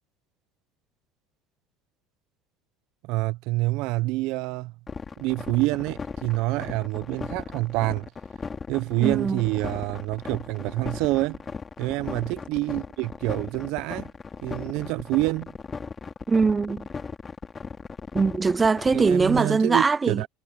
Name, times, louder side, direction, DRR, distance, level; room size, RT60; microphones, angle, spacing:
voice 1, 3.0-4.7 5.2-8.1 8.7-11.4 11.8-14.1 14.4-15.5 18.9-20.3, right 20 dB, 65° right, 0.9 m, -27 dB
sound 1, 4.9-19.4, left 5 dB, 25° left, 2.8 m, -37 dB
voice 2, 9.0-9.4 16.3-16.9 18.1-20.2, right 4 dB, 20° right, 0.9 m, -22 dB
supercardioid pair, 95°, 0 cm